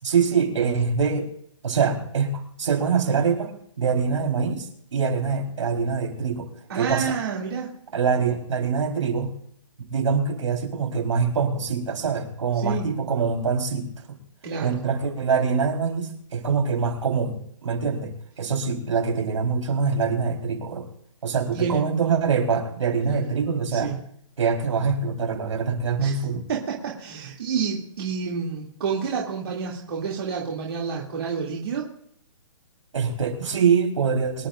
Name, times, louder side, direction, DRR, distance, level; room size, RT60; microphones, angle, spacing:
voice 1, 0.0-1.3 1.6-3.5 3.8-6.5 6.7-7.1 7.9-9.3 9.9-13.9 14.6-18.1 18.4-20.9 21.2-23.9 24.4-26.5 32.9-34.5, right 5 dB, 70° right, 2 dB, 4.4 m, -24 dB
voice 2, 6.7-7.7 12.6-12.9 14.4-14.8 21.5-21.8 23.0-23.2 23.7-23.9 26.0-26.2 26.5-31.9, right 6 dB, 50° right, -3 dB, 2.8 m, -29 dB
25.0 x 11.5 x 2.6 m, 0.67 s
hypercardioid pair, 170°, 16 cm